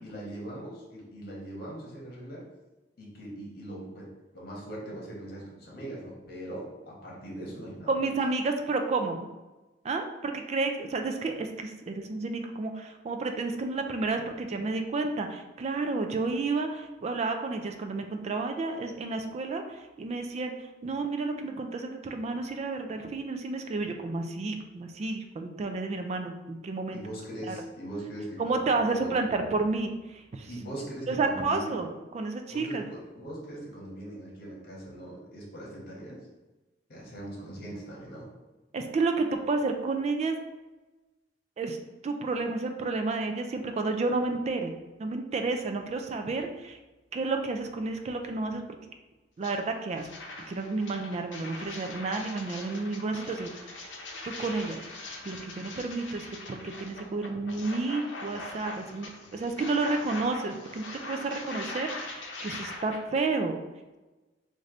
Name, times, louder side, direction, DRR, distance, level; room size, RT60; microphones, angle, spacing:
voice 1, 0.0-2.4 3.0-8.2 26.9-29.2 30.5-31.8 32.5-36.3 36.9-38.3, right 1 dB, 55° left, -3 dB, 1.3 m, -41 dB
voice 2, 7.9-9.3 9.8-20.5 20.8-27.0 27.5-27.6 28.4-30.5 31.1-31.9 32.1-32.9 38.7-40.3 41.6-41.8 42.0-44.7 45.0-46.8 47.1-48.6 49.4-50.1 50.5-54.0 54.2-54.8 55.3-63.5, right 3 dB, 35° right, 5 dB, 0.3 m, -31 dB
sound 1, 49.4-49.5 49.9-63.0, left 2 dB, 80° left, 0.7 m, -41 dB
3.3 x 2.6 x 3.7 m, 1.1 s
head